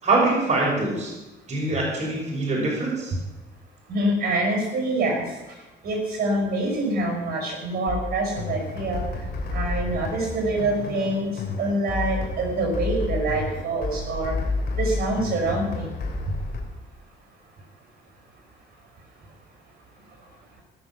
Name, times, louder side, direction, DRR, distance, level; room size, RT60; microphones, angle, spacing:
voice 1, 0.0-1.1 1.5-3.1, right 2 dB, 40° right, -3 dB, 5.6 m, -23 dB
voice 2, 3.9-5.2 5.8-9.0 9.5-11.3 11.6-14.4 14.8-15.9, right 2 dB, 55° right, 1 dB, 5.6 m, -25 dB
sound 1, 7.9-16.6, left 3 dB, 55° left, 3.4 m, -30 dB
18.5 x 7.0 x 7.4 m, 1.1 s
cardioid pair, 95°, 19 cm